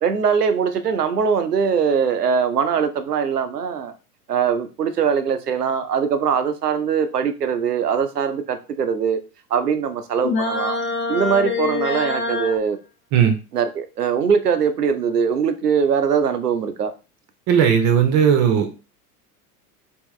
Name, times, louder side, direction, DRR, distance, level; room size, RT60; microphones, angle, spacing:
voice 1, 0.0-3.9 4.3-9.2 9.5-10.8 11.1-12.8 13.5-16.9, right 6 dB, 85° right, 9 dB, 0.6 m, -21 dB
sound 1, 10.2-12.6, left 3 dB, 25° left, 0.5 m, -24 dB
voice 2, 17.5-18.8, right 8 dB, 40° right, 5 dB, 0.8 m, -17 dB
3.5 x 2.9 x 3.1 m, 0.32 s
figure-of-eight pair, 80°, 46 cm